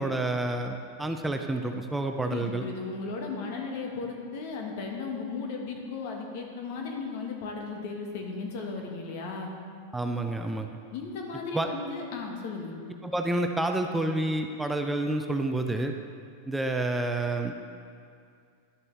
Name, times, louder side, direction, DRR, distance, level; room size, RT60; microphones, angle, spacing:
voice 1, 0.0-2.6 9.9-10.8 11.5-11.7 13.0-16.0 16.5-17.5, right 2 dB, 5° right, 4 dB, 0.5 m, -29 dB
voice 2, 2.2-9.5 10.9-12.8, left 4 dB, 60° left, 1 dB, 1.5 m, -36 dB
11.5 x 6.9 x 3.4 m, 2.3 s
hypercardioid pair, 105°, 0 cm